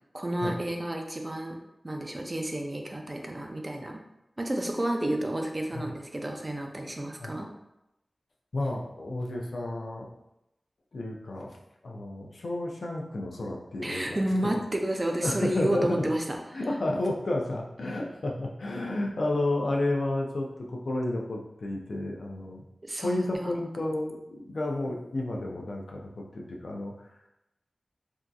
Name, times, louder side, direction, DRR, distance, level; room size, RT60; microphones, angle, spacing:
voice 1, 0.1-1.6 1.8-4.0 4.4-7.5 13.8-16.4 22.8-23.5, right 1 dB, 30° right, 2 dB, 0.4 m, -31 dB
voice 2, 8.5-10.1 10.9-11.6 11.8-14.6 15.2-16.0 16.5-22.6 23.0-26.9, left 1 dB, 75° left, 0 dB, 0.4 m, -31 dB
3.5 x 2.6 x 2.3 m, 0.88 s
wide cardioid pair, 90°, 0 cm